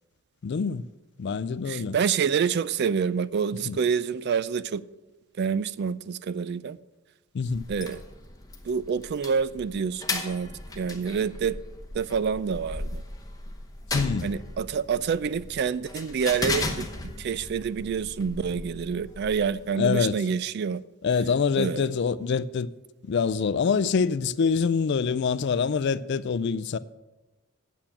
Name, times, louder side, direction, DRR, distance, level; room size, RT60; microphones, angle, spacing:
voice 1, 0.4-0.9 1.2-2.0 3.7-3.8 7.3-7.6 13.9-14.3 19.8-20.2 21.0-22.7 23.0-26.8, left 5 dB, 55° left, 0.4 m, -25 dB
voice 2, 1.7-4.8 5.4-6.8 7.7-8.0 8.7-11.6 11.9-13.0 14.2-20.8 21.6-21.9, right 6 dB, 50° right, 0.3 m, -27 dB
sound 1, 7.5-19.9, left 2 dB, 15° left, 1.0 m, -36 dB
8.9 x 7.2 x 7.2 m
head